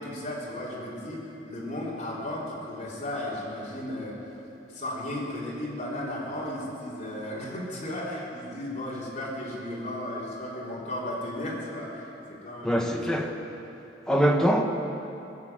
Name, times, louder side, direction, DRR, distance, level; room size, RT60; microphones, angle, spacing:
voice 1, 0.0-4.2 4.7-13.0, left 1 dB, 40° left, -6 dB, 4.0 m, -35 dB
voice 2, 12.6-13.3 14.1-14.6, equal, 5° left, 1 dB, 1.1 m, -23 dB
22.0 x 7.4 x 7.7 m, 2.9 s
head